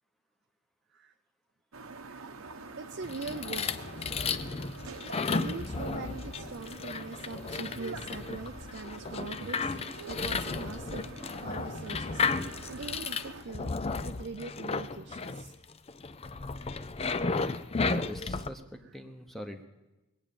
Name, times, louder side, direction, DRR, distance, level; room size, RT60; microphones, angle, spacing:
sound 1, 1.7-13.4, right 3 dB, 75° right, 1.0 m, -46 dB
voice 1, 2.8-3.7 5.3-13.7 14.0-15.5 16.7-16.8 18.8-19.0, right 4 dB, 55° right, 6 dB, 0.6 m, -42 dB
sound 2, 3.0-18.5, left 4 dB, 25° left, 0.5 m, -34 dB
voice 2, 17.8-19.6, equal, ahead, 5 dB, 1.0 m, -42 dB
21.5 x 8.8 x 7.1 m, 1.0 s
head